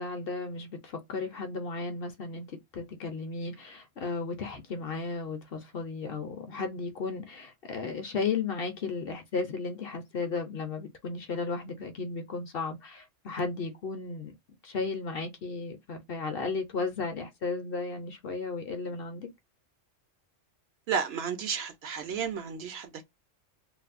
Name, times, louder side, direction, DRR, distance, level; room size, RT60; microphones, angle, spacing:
voice 1, 0.0-14.3 14.6-19.3, left 4 dB, 60° left, 0.7 m, -34 dB
voice 2, 20.9-23.0, right 6 dB, 65° right, 0.7 m, -32 dB
3.2 x 2.0 x 2.4 m
omnidirectional pair, 1.3 m